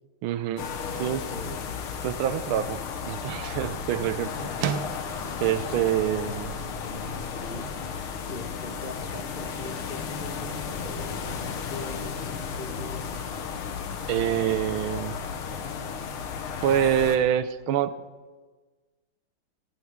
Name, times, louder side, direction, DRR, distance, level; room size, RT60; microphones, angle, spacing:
voice 1, 0.2-0.6 1.0-1.2 2.0-4.3 5.4-6.5 14.1-15.2 16.6-18.0, right 10 dB, 80° right, 14 dB, 1.4 m, -26 dB
Barn Noise, 0.6-17.2, left 6 dB, 90° left, 2.0 m, -34 dB
voice 2, 0.8-1.6 4.2-4.6 6.1-7.7 8.2-13.2, left 2 dB, 30° left, 2 dB, 1.4 m, -41 dB
sound 1, 2.6-12.3, right 8 dB, 60° right, 1.2 m, -41 dB
17.5 x 17.5 x 3.6 m, 1.4 s
omnidirectional pair, 2.3 m